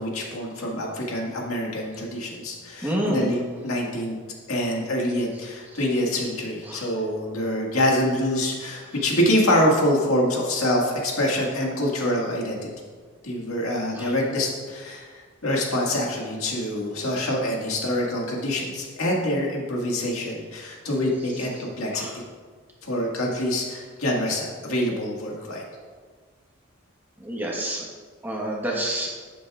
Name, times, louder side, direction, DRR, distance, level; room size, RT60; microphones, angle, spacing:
voice 1, 0.0-4.2 4.5-12.6 13.2-15.1 15.4-22.1 22.8-25.6, left 1 dB, 80° left, -2 dB, 1.8 m, -25 dB
voice 2, 2.8-3.2 5.7-5.8 6.6-6.9 13.9-14.1 21.3-21.6 21.9-22.2 27.2-27.9 28.2-29.1, right 1 dB, 10° right, -3 dB, 1.2 m, -29 dB
12.0 x 8.2 x 2.4 m, 1.5 s
head